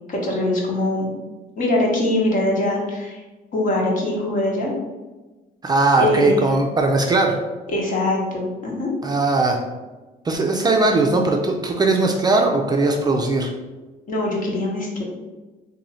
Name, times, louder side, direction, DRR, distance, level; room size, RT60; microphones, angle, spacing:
voice 1, 0.1-1.1 1.6-3.2 3.5-4.7 6.0-6.4 7.7-8.9 14.1-15.0, left 1 dB, 50° left, -2 dB, 1.1 m, -22 dB
voice 2, 5.6-7.4 9.0-9.6 10.2-13.5, right 2 dB, 25° right, 2 dB, 0.4 m, -19 dB
3.1 x 2.7 x 3.9 m, 1.2 s
cardioid pair, 110°, 17 cm